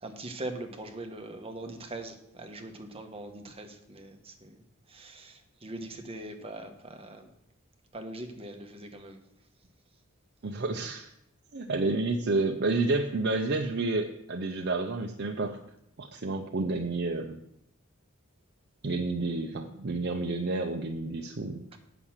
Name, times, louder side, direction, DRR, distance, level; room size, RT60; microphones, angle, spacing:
voice 1, 0.0-4.6 4.9-7.3 7.9-9.2 21.7-21.8, right 2 dB, 30° right, 6 dB, 1.1 m, -41 dB
voice 2, 10.4-11.1 11.5-15.6 16.0-17.4 18.8-21.8, right 3 dB, 50° right, 4 dB, 0.7 m, -30 dB
8.3 x 5.9 x 7.2 m, 0.79 s
head